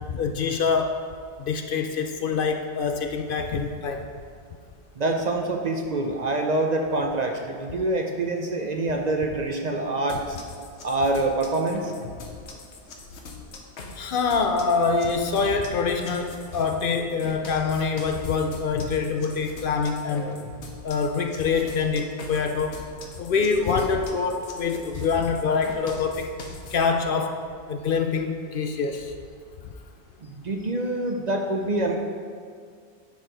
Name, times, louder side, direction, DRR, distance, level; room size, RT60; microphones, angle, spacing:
voice 1, 0.1-1.0 1.4-4.1 13.9-20.5 20.8-22.8 23.2-26.4 26.7-27.4 27.7-29.1, left 5 dB, 60° left, 5 dB, 0.7 m, -25 dB
voice 2, 5.0-10.4 10.8-11.9 30.2-32.0, right 2 dB, 45° right, 3 dB, 0.6 m, -26 dB
sound 1, 10.1-26.9, left 3 dB, 90° left, 1.2 m, -41 dB
10.5 x 4.6 x 5.1 m, 2.1 s
omnidirectional pair, 1.1 m